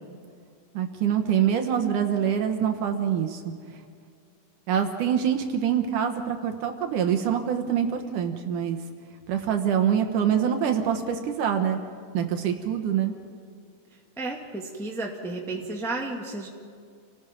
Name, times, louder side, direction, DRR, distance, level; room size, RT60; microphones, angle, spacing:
voice 1, 0.7-3.5 4.7-8.8 9.3-11.8 12.1-13.1, right 8 dB, 70° right, 5 dB, 2.6 m, -25 dB
voice 2, 14.2-16.5, right 2 dB, ahead, 0 dB, 1.2 m, -32 dB
29.5 x 19.0 x 5.3 m, 2.2 s
omnidirectional pair, 4.1 m